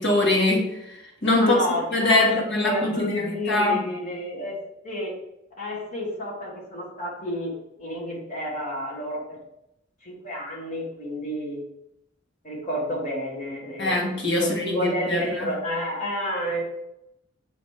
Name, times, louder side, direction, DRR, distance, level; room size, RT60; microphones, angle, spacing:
voice 1, 0.0-1.6 1.9-3.8 13.8-15.5, left 2 dB, 60° left, -1 dB, 1.8 m, -23 dB
voice 2, 1.4-4.6 4.8-5.1 5.6-7.5 7.8-9.4 10.0-11.6 12.4-16.6, equal, 40° left, -3 dB, 1.9 m, -30 dB
6.4 x 3.1 x 4.9 m, 0.84 s
head